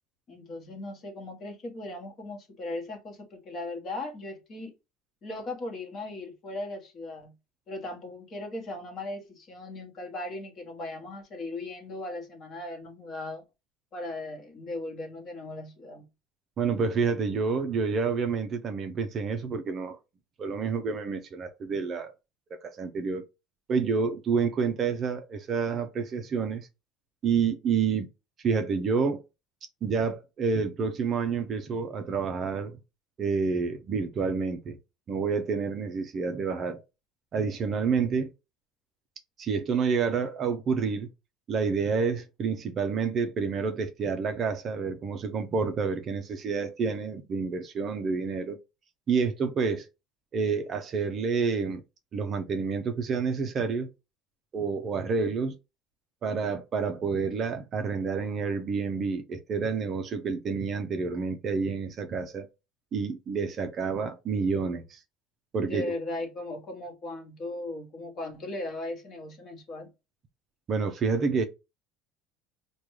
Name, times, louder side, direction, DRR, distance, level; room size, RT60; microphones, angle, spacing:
voice 1, 0.3-4.7 5.2-7.3 7.7-13.4 13.9-16.1 65.6-69.9, left 2 dB, 30° left, 1.1 m, -38 dB
voice 2, 16.6-20.0 20.4-22.1 22.6-23.2 23.7-26.7 27.2-28.1 28.4-29.2 29.8-32.8 33.2-34.8 35.1-36.8 37.3-38.3 39.4-41.1 41.5-48.6 49.1-49.9 50.3-51.8 52.1-53.9 54.5-55.6 56.2-62.5 62.9-65.0 65.5-65.9 70.7-71.4, right 5 dB, 30° right, 0.4 m, -28 dB
4.9 x 2.2 x 3.0 m
cardioid pair, 160°, 0 cm